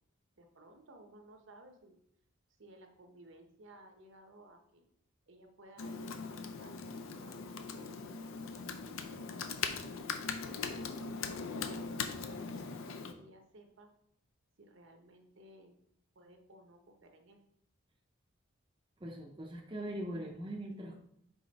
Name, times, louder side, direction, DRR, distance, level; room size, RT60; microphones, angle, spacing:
voice 1, 0.4-2.0 2.6-4.8 5.3-6.8 7.2-9.3 10.4-12.7 13.1-13.9 14.6-15.8 16.1-17.4, right 1 dB, 60° right, 4 dB, 0.8 m, -58 dB
Computer keyboard, 5.8-13.1, left 5 dB, 75° left, 0.5 m, -40 dB
voice 2, 19.0-21.0, right 1 dB, 20° right, 0 dB, 0.6 m, -41 dB
5.0 x 4.9 x 4.0 m, 0.72 s
head